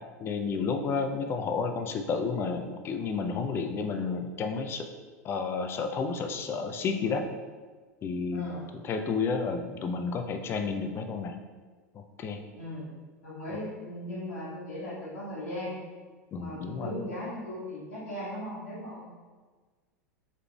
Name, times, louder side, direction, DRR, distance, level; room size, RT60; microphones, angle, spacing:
voice 1, 0.2-4.9 5.2-7.3 8.0-8.5 8.8-11.3 11.9-12.4 16.3-16.9, left 5 dB, 25° left, 6 dB, 0.4 m, -31 dB
voice 2, 8.3-8.7 12.6-12.9 13.2-15.7 16.3-19.0, left 1 dB, 70° left, -10 dB, 1.2 m, -37 dB
4.5 x 3.6 x 2.3 m, 1.4 s
figure-of-eight pair, 85°, 9 cm